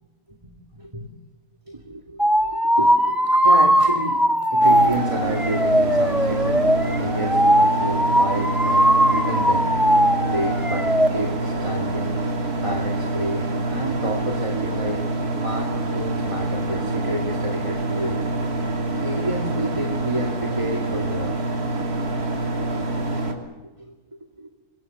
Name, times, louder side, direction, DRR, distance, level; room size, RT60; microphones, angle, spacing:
voice 1, 0.7-1.1 1.7-4.2 4.5-9.7 10.2-12.2 12.6-15.0 15.4-18.3 19.0-21.5 23.6-24.2, right 1 dB, 20° right, 2 dB, 2.1 m, -31 dB
sound 1, 2.2-11.1, equal, ahead, 1.1 m, -19 dB
sound 2, 4.6-23.3, right 2 dB, 75° right, 3.4 m, -26 dB
27.5 x 22.0 x 6.9 m, 1.2 s
omnidirectional pair, 1.7 m